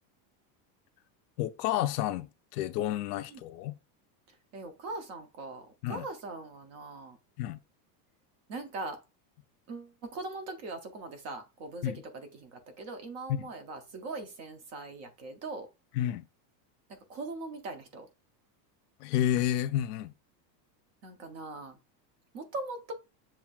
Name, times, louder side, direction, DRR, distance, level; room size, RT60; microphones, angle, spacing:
voice 1, 1.4-2.3 2.5-3.7 5.8-6.1 7.4-7.6 11.8-12.0 13.3-13.5 15.9-16.2 19.0-20.1, left 12 dB, 70° left, 0.6 m, -30 dB
voice 2, 4.5-7.2 8.5-9.0 9.7-15.7 16.9-18.1 21.0-21.8 22.3-22.9, right 3 dB, 35° right, 0.6 m, -41 dB
7.1 x 2.6 x 2.3 m
supercardioid pair, 170°, 50 cm